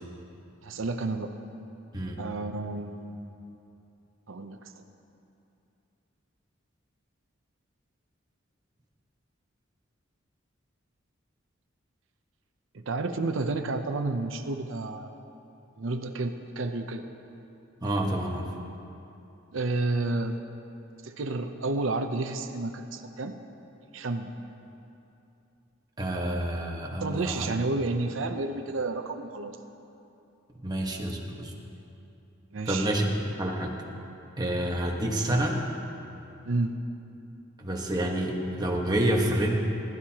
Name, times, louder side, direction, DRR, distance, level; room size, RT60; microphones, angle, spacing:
voice 1, 0.6-1.4 2.2-3.3 4.3-4.6 12.7-15.1 15.8-17.1 19.5-20.4 21.0-23.4 23.9-24.4 27.0-29.5 32.5-33.0 36.4-36.8, right 2 dB, 80° right, 6 dB, 0.7 m, -31 dB
voice 2, 17.8-18.5 26.0-27.5 30.6-31.5 32.7-33.1 33.4-33.8 34.4-35.6 37.6-39.5, right 1 dB, 20° right, 0 dB, 1.3 m, -28 dB
20.0 x 12.5 x 2.9 m, 2.8 s
head